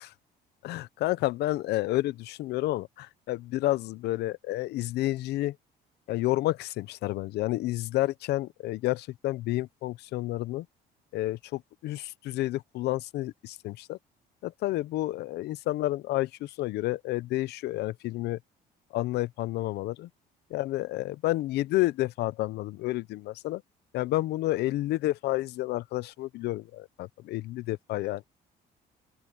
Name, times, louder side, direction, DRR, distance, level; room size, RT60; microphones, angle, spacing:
voice 1, 0.6-5.6 6.1-10.7 11.1-14.0 14.4-18.4 18.9-20.1 20.5-23.6 23.9-28.2, left 17 dB, 75° left, 0.8 m, -30 dB
open air
cardioid pair, 110°, 17 cm